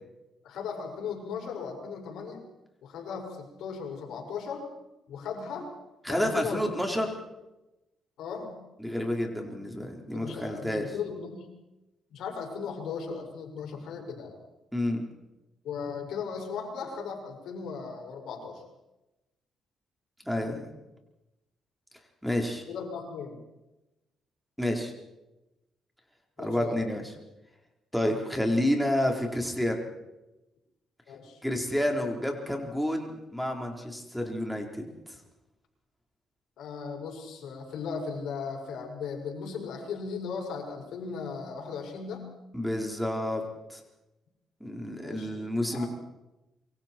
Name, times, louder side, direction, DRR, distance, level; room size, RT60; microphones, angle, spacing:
voice 1, 0.4-2.4 2.8-4.7 5.1-5.7 6.1-6.6 8.2-8.6 10.1-11.5 12.1-14.3 15.6-18.6 22.7-23.4 26.4-26.8 31.1-31.4 36.6-42.2 45.0-45.9, left 5 dB, 80° left, 2 dB, 6.3 m, -37 dB
voice 2, 6.0-7.1 8.8-10.9 14.7-15.0 20.2-20.6 22.2-22.6 24.6-24.9 26.4-27.1 27.9-29.8 31.4-34.9 42.5-43.4 43.7-43.8 44.6-45.9, left 1 dB, ahead, 2 dB, 4.4 m, -29 dB
27.5 x 24.0 x 4.6 m, 0.97 s
cardioid pair, 90°, 0 cm